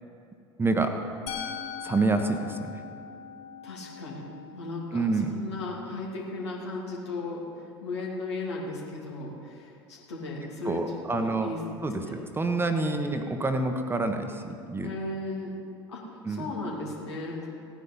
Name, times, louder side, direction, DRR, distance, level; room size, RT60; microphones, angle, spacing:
voice 1, 0.6-0.9 1.8-2.7 4.9-5.3 10.6-11.5 11.8-14.9 16.2-16.5, right 3 dB, 15° right, 6 dB, 1.2 m, -27 dB
Musical instrument, 1.3-7.2, left 7 dB, 45° left, 3.4 m, -42 dB
voice 2, 3.6-4.2 4.5-7.4 7.8-11.6 12.0-12.1 14.8-15.5 15.9-17.6, left 2 dB, 75° left, -2 dB, 2.9 m, -36 dB
17.0 x 9.7 x 5.5 m, 2.4 s
figure-of-eight pair, 70°, 14 cm